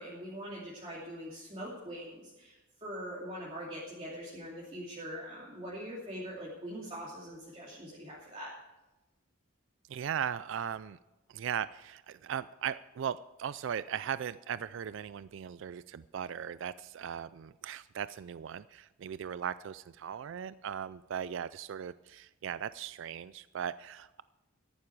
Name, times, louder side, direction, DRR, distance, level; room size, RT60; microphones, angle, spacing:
voice 1, 0.0-8.5, equal, 25° right, -6 dB, 2.8 m, -43 dB
voice 2, 9.9-11.0 11.3-24.2, right 8 dB, 60° right, 16 dB, 0.3 m, -38 dB
13.5 x 11.5 x 4.7 m, 1.0 s
head